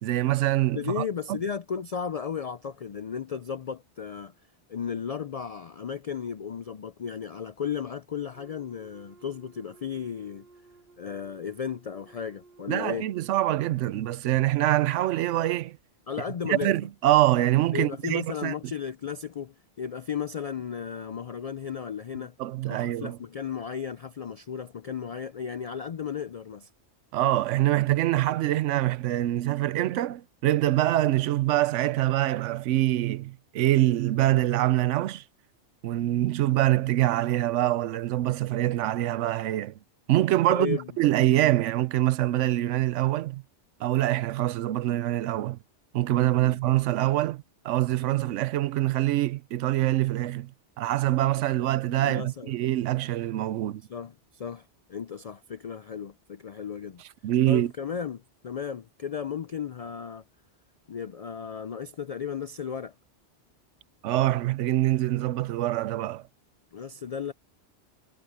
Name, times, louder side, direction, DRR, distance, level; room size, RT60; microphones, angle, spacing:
voice 1, 0.0-1.4 12.7-15.8 16.5-18.5 22.4-23.2 27.1-35.2 35.8-39.7 40.1-43.4 43.8-45.6 45.9-50.5 50.8-53.8 57.2-57.7 64.0-66.2, right 15 dB, 90° right, 0.9 m, -25 dB
voice 2, 0.7-4.3 4.7-10.5 11.0-13.1 16.1-16.8 17.7-22.4 22.7-26.7 40.5-40.9 46.4-46.6 51.6-52.6 53.9-57.0 57.5-60.2 60.9-62.9 66.7-67.3, left 7 dB, 70° left, 0.3 m, -35 dB
Wind instrument woodwind instrument, 8.3-14.1, right 3 dB, 55° right, 2.6 m, -56 dB
omnidirectional pair, 1.2 m